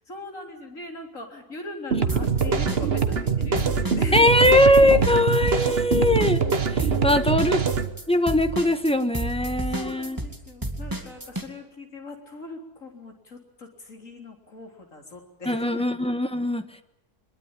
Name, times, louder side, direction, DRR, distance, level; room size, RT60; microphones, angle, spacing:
voice 1, 0.0-4.3 7.2-7.5 9.6-15.9, left 2 dB, 55° left, 2 dB, 4.0 m, -40 dB
sound 1, 1.9-7.9, right 5 dB, 40° right, 1.3 m, -24 dB
sound 2, 2.1-3.3 3.6-11.5, right 1 dB, 15° right, 2.2 m, -31 dB
voice 2, 4.1-6.4 6.7-7.6 8.1-10.2 15.5-16.8, left 1 dB, 5° left, 8 dB, 1.1 m, -21 dB
23.0 x 22.0 x 9.0 m, 0.86 s
omnidirectional pair, 1.7 m